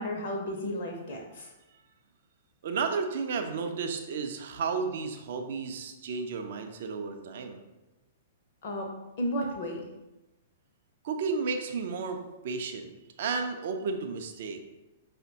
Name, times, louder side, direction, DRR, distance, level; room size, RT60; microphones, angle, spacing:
voice 1, 0.0-1.5 8.6-8.9 9.2-9.8, equal, 45° left, 1 dB, 0.4 m, -33 dB
voice 2, 2.6-7.6 11.0-14.6, right 5 dB, 50° right, 6 dB, 0.4 m, -33 dB
5.2 x 2.1 x 2.7 m, 1.0 s
figure-of-eight pair, 105°, 0 cm